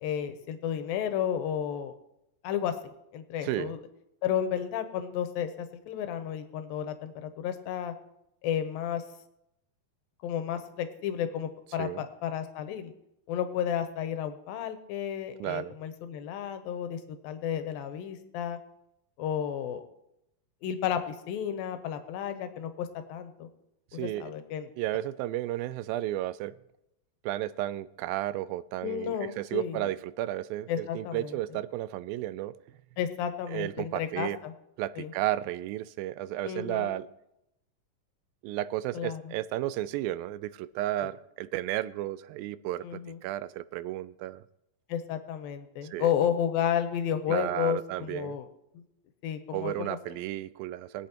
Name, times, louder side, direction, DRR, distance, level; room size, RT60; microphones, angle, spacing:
voice 1, 0.0-1.9 2.4-2.8 3.1-3.8 4.2-7.9 8.4-9.0 10.2-12.9 13.3-18.6 19.2-19.8 20.6-23.5 23.9-24.7 28.8-29.9 30.7-31.4 33.0-34.5 35.0-35.1 36.4-37.0 38.9-39.3 41.0-41.1 42.8-43.2 44.9-48.5 48.8-48.9 49.2-50.0, left 9 dB, 85° left, 9 dB, 2.6 m, -32 dB
voice 2, 3.4-3.7 11.8-12.0 15.4-15.7 23.9-24.3 24.8-26.6 27.2-32.6 33.5-34.4 34.8-37.1 38.4-44.4 45.9-46.1 47.3-48.4 49.5-51.1, right 14 dB, 90° right, 16 dB, 2.3 m, -33 dB
22.5 x 8.3 x 3.0 m, 0.84 s
omnidirectional pair, 4.0 m